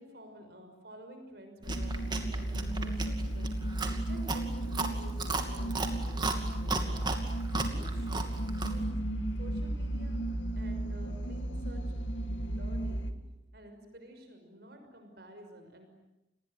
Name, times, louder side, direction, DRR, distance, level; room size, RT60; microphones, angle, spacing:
voice 1, 0.0-3.6 4.1-6.9 7.6-8.3 8.6-9.0 9.4-10.2 10.5-12.0 12.5-13.1 13.5-15.9, equal, 60° right, 5 dB, 6.2 m, -51 dB
Chewing mastication, 1.6-8.8, right 3 dB, 25° right, 2.6 m, -36 dB
sound 1, 1.7-13.1, right 1 dB, 90° left, 2.2 m, -34 dB
29.5 x 20.5 x 9.4 m, 0.92 s
head